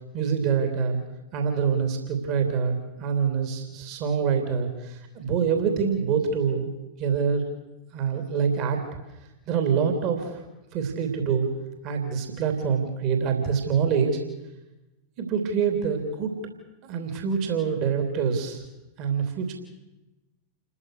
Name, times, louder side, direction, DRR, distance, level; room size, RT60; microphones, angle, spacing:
voice 1, 0.1-1.0 1.3-6.7 7.0-7.4 7.9-8.8 9.5-10.4 10.7-11.5 11.8-14.2 15.2-16.3 16.8-18.6 19.0-19.5, right 6 dB, 40° right, 5 dB, 3.2 m, -25 dB
29.0 x 14.0 x 6.5 m, 0.99 s
figure-of-eight pair, 90°, 0 cm